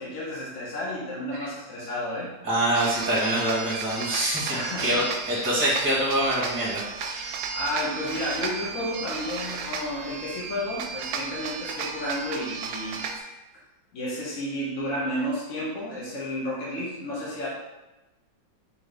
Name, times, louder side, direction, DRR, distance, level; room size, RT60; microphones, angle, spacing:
voice 1, 0.0-2.3 4.5-5.0 7.5-13.0 13.9-17.5, left 1 dB, 45° left, -6 dB, 1.2 m, -31 dB
voice 2, 2.4-7.3, right 1 dB, 5° right, -6 dB, 1.1 m, -25 dB
sound 1, 2.7-13.2, right 5 dB, 90° right, 1.4 m, -34 dB
3.7 x 3.5 x 3.8 m, 1.1 s
omnidirectional pair, 2.2 m